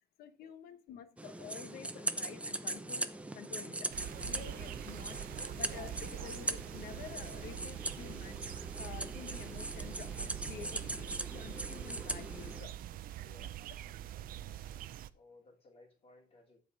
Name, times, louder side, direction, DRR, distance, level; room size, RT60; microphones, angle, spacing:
voice 1, 0.2-3.9 4.2-5.2 5.6-8.4 8.8-12.8 13.4-13.5, left 8 dB, 80° left, 1.2 m, -50 dB
sound 1, 1.2-12.6, right 2 dB, 10° right, 0.8 m, -40 dB
sound 2, 3.9-15.1, right 12 dB, 65° right, 0.6 m, -44 dB
Run, 5.8-12.9, right 4 dB, 35° right, 0.9 m, -58 dB
voice 2, 13.2-13.6 15.1-16.6, left 2 dB, 40° left, 3.1 m, -60 dB
11.5 x 4.8 x 5.4 m
cardioid pair, 115°, 16 cm